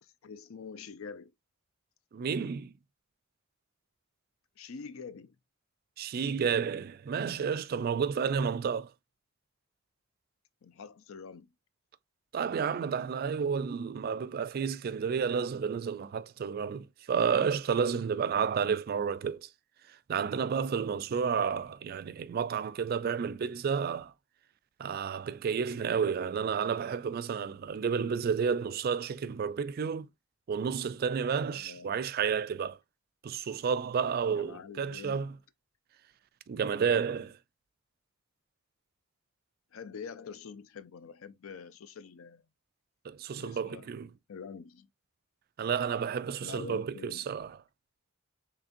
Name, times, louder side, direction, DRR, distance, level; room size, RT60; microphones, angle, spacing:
voice 1, 0.0-1.3 4.6-5.4 10.6-11.5 21.4-21.7 31.6-32.0 34.3-35.3 36.9-37.2 39.7-42.4 43.3-43.9 44.3-44.9 46.4-47.2, left 5 dB, 85° left, 0.5 m, -46 dB
voice 2, 2.1-2.7 6.0-8.9 12.3-19.5 20.1-24.1 24.8-30.1 30.5-32.8 33.2-35.3 36.5-37.4 43.0-44.1 45.6-47.5, right 6 dB, 45° right, 0.3 m, -31 dB
3.7 x 3.4 x 2.6 m
head